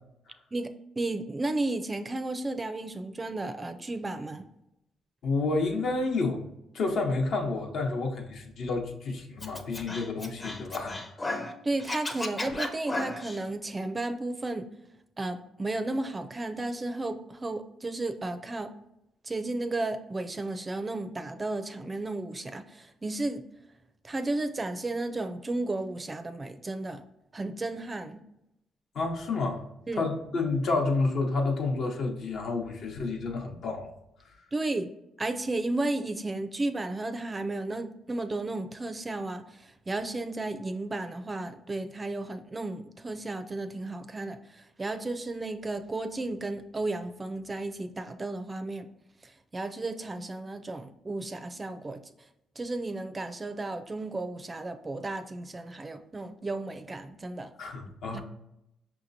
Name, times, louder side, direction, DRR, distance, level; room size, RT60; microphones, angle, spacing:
voice 1, 1.0-4.4 11.6-14.7 15.2-18.7 19.2-23.4 24.0-27.0 27.3-28.2 29.9-30.1 34.5-34.9 35.2-48.9 49.2-52.0 52.6-57.5 58.1-58.2, right 2 dB, 25° right, 9 dB, 0.4 m, -33 dB
voice 2, 5.2-6.4 6.7-11.0 28.9-29.6 30.0-33.9 57.6-58.2, left 3 dB, 70° left, 2 dB, 0.8 m, -29 dB
Scratching (performance technique), 9.4-11.5 11.8-13.4, left 2 dB, 25° left, 0.6 m, -34 dB
5.6 x 2.8 x 2.6 m, 0.84 s
cardioid pair, 90°, 0 cm